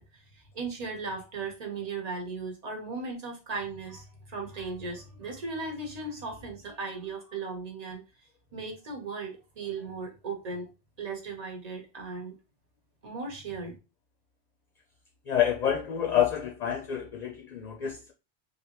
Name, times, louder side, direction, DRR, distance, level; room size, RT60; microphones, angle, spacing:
voice 1, 0.0-8.0 8.5-10.7 11.0-12.4 13.0-13.8, right 4 dB, 40° right, 1.0 m, -37 dB
voice 2, 15.3-18.1, left 10 dB, 55° left, 0.5 m, -28 dB
3.2 x 2.6 x 3.0 m
omnidirectional pair, 1.1 m